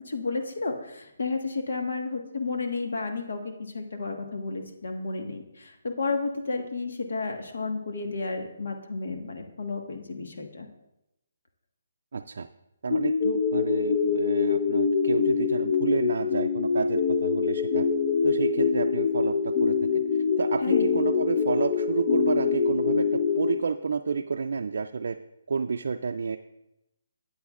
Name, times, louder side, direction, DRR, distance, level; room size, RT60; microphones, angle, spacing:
voice 1, 0.0-10.7 20.6-20.9, left 3 dB, 70° left, 3 dB, 1.4 m, -32 dB
voice 2, 12.1-12.5 12.8-17.9 18.2-20.0 20.4-25.2 25.5-26.4, right 5 dB, 65° right, 5 dB, 0.3 m, -30 dB
sound 1, 12.9-23.6, left 6 dB, 35° left, 0.5 m, -25 dB
12.5 x 8.6 x 2.4 m, 0.88 s
hypercardioid pair, 165°, 0 cm